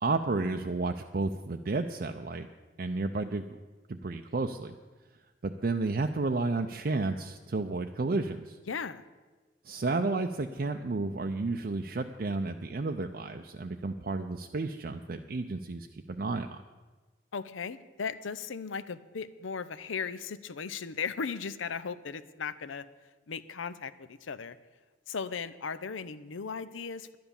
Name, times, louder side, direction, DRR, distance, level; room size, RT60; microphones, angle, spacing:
voice 1, 0.0-2.5 2.8-3.4 3.9-4.7 5.4-8.6 9.6-16.6, right 3 dB, 50° right, 5 dB, 0.5 m, -32 dB
voice 2, 8.7-9.0 17.3-22.8 23.3-24.6 25.1-27.1, left 5 dB, 90° left, 15 dB, 0.6 m, -37 dB
11.5 x 10.5 x 7.1 m, 1.3 s
head